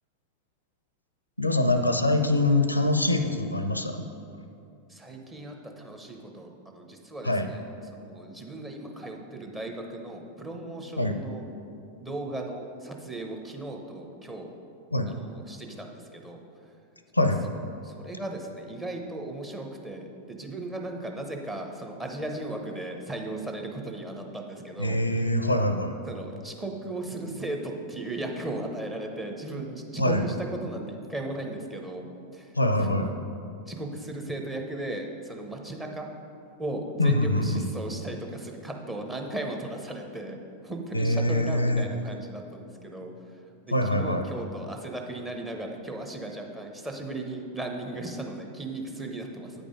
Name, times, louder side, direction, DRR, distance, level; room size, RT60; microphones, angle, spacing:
voice 1, 1.4-4.0 7.2-7.5 11.0-11.2 14.9-15.1 17.1-17.4 24.8-26.0 30.0-30.2 32.6-33.1 37.0-37.7 40.9-41.9 43.7-44.3, left 1 dB, 85° left, 8 dB, 0.5 m, -24 dB
voice 2, 4.9-7.6 7.9-11.4 12.0-14.5 15.1-16.4 17.8-25.0 26.1-32.0 32.3-32.5 32.8-33.1 33.7-36.1 36.6-40.4 40.6-43.1 43.9-49.5, right 2 dB, 15° right, 2 dB, 0.8 m, -36 dB
8.5 x 5.2 x 5.1 m, 2.6 s
figure-of-eight pair, 90°, 0 cm